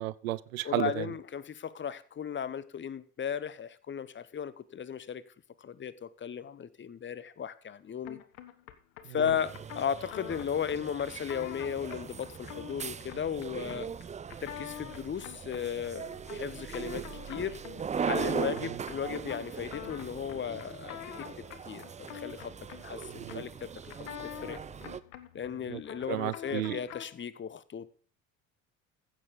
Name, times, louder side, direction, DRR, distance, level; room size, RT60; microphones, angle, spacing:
voice 1, 0.0-1.1 18.6-18.8 23.1-23.4 25.7-25.8 26.1-26.8, right 16 dB, 70° right, 0.6 m, -33 dB
voice 2, 0.6-5.2 5.6-8.2 9.1-13.9 14.4-17.6 18.0-22.5 22.8-24.6 25.3-27.9, left 8 dB, 25° left, 0.9 m, -36 dB
sound 1, 8.0-27.2, left 11 dB, 70° left, 1.3 m, -47 dB
sound 2, 9.4-25.0, right 7 dB, 15° right, 0.6 m, -40 dB
15.0 x 6.9 x 5.3 m
figure-of-eight pair, 55°, 42 cm